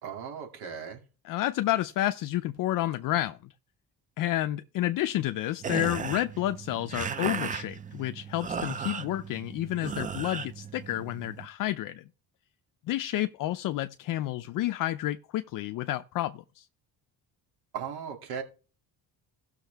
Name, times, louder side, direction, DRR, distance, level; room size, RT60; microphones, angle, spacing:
voice 1, 0.0-1.0 17.7-18.4, right 7 dB, 70° right, 2.7 m, -37 dB
voice 2, 1.2-3.5 4.2-12.0 12.9-16.7, left 14 dB, 55° left, 0.5 m, -30 dB
sound 1, 5.6-11.5, right 6 dB, 20° right, 0.4 m, -36 dB
16.5 x 6.4 x 3.5 m
cardioid pair, 180°, 40 cm